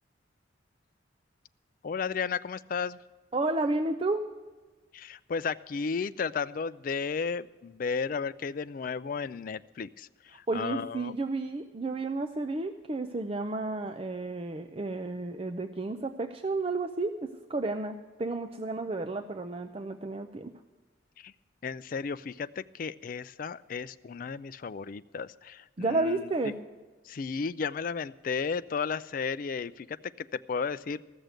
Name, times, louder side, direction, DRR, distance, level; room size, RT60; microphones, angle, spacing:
voice 1, 1.8-3.0 4.9-11.2 21.2-21.3 21.6-26.5 27.1-31.0, left 5 dB, 45° left, 14 dB, 0.4 m, -34 dB
voice 2, 3.3-4.3 10.5-20.5 25.8-26.5, right 2 dB, 30° right, 6 dB, 0.5 m, -32 dB
14.5 x 6.6 x 8.9 m, 1.3 s
head